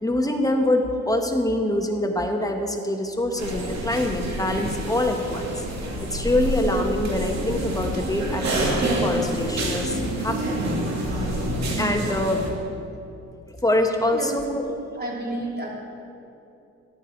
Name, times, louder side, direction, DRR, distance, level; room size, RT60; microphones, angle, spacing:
voice 1, 0.0-5.6 6.1-10.7 11.2-11.3 11.8-12.4 13.6-14.6, left 1 dB, 10° left, 3 dB, 1.3 m, -24 dB
sound 1, 3.4-12.5, right 1 dB, 60° right, 2.5 m, -27 dB
voice 2, 14.9-15.7, right 2 dB, 30° right, -2 dB, 3.1 m, -30 dB
13.5 x 11.0 x 4.6 m, 2.8 s
cardioid pair, 90°, 30 cm